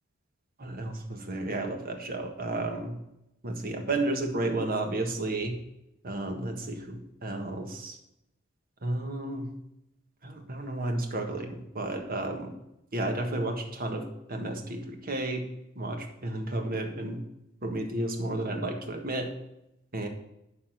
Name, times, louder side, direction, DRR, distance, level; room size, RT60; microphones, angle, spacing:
voice 1, 0.6-2.9 3.4-5.5 6.0-8.0 8.8-9.5 10.2-12.5 12.9-15.4 15.7-17.2 17.6-19.3 19.9-20.1, right 2 dB, 45° right, 4 dB, 1.5 m, -32 dB
12.0 x 4.2 x 7.9 m, 0.86 s
head